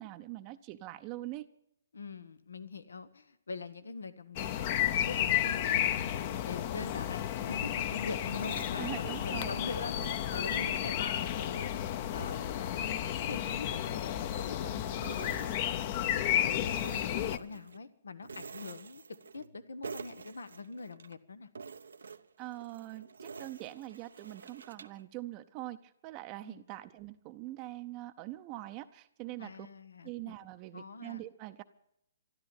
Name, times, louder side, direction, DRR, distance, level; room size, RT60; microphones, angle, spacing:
voice 1, 0.0-1.5 8.8-9.6 22.4-29.7 30.0-31.6, right 16 dB, 30° right, 8 dB, 0.7 m, -43 dB
voice 2, 1.9-6.1 6.4-12.9 13.2-16.7 16.9-19.0 19.3-21.5 26.4-26.6 29.4-30.3 30.7-31.3, left 4 dB, 85° left, 13 dB, 1.1 m, -44 dB
sound 1, 4.4-17.4, left 11 dB, 40° left, 0.8 m, -32 dB
sound 2, 8.3-9.6 10.0-11.5 11.9-14.6 15.0-16.2 16.5-17.8 18.2-19.6 19.8-21.1 21.5-25.0, right 5 dB, 85° right, 0.9 m, -48 dB
13.5 x 12.0 x 8.8 m, 0.77 s
hypercardioid pair, 145°, 0 cm